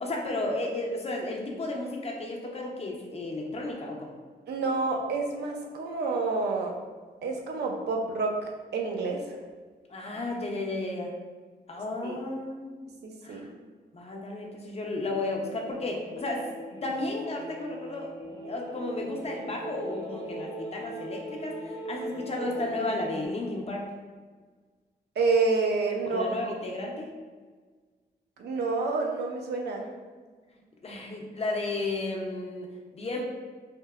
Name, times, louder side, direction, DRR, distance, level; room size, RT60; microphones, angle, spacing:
voice 1, 0.0-4.1 9.9-11.1 11.7-12.7 13.2-13.5 13.9-18.1 18.5-23.9 26.1-27.1 30.8-33.2, left 2 dB, 35° left, 0 dB, 0.5 m, -33 dB
voice 2, 4.5-6.7 7.2-8.3 8.7-9.4 12.0-12.2 13.3-13.4 25.2-26.5 28.4-29.9, right 3 dB, 75° right, 1 dB, 0.4 m, -28 dB
sound 1, 14.9-23.3, right 1 dB, 60° right, 0.9 m, -40 dB
2.8 x 2.0 x 2.3 m, 1.4 s
cardioid pair, 75°, 17 cm